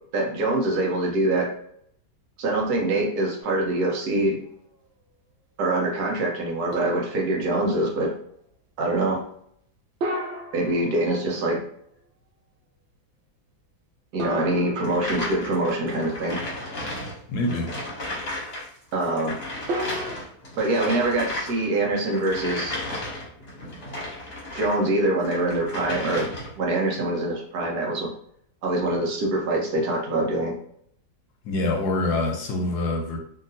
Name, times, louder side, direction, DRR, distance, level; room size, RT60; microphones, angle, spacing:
voice 1, 0.1-1.5 2.4-4.4 5.6-8.1 8.8-9.2 10.5-11.6 14.1-16.4 18.9-19.4 20.6-22.8 24.5-26.3 26.6-28.1 28.6-30.5, right 2 dB, 70° right, 0 dB, 1.2 m, -24 dB
sound 1, 3.4-4.3 4.8-4.9 6.7-7.6 10.0-11.6 14.2-15.5 19.7-20.2, right 1 dB, 90° right, 0.5 m, -34 dB
sound 2, 14.8-18.7 18.9-24.8 25.2-26.7, left 1 dB, 45° left, 1.0 m, -34 dB
voice 2, 17.3-17.7 31.4-33.2, left 2 dB, 75° left, 1 dB, 1.1 m, -25 dB
2.8 x 2.7 x 2.6 m, 0.67 s
omnidirectional pair, 1.8 m